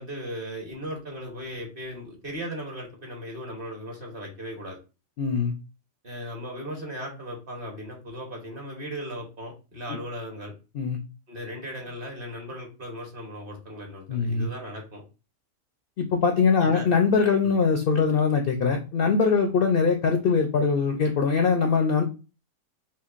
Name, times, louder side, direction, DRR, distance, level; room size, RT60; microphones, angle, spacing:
voice 1, 0.0-4.8 6.0-10.5 11.3-15.0 16.6-16.9 17.4-17.5, equal, 40° right, 0 dB, 1.2 m, -37 dB
voice 2, 5.2-5.5 10.7-11.0 14.1-14.5 16.0-22.0, left 5 dB, 60° left, 4 dB, 0.6 m, -22 dB
5.6 x 2.3 x 2.4 m, 0.31 s
omnidirectional pair, 1.5 m